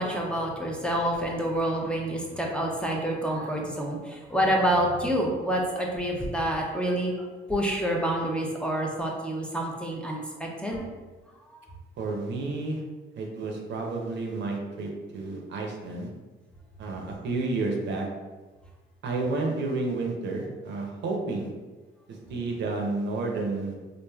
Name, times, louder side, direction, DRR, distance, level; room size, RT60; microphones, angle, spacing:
voice 1, 0.0-7.1 7.5-10.8, right 1 dB, 5° left, -2 dB, 0.4 m, -27 dB
voice 2, 12.0-12.8 13.2-16.1 16.8-18.1 19.0-21.5 22.1-23.7, right 3 dB, 65° right, 0 dB, 0.6 m, -31 dB
3.2 x 2.4 x 2.3 m, 1.3 s
cardioid pair, 90°, 20 cm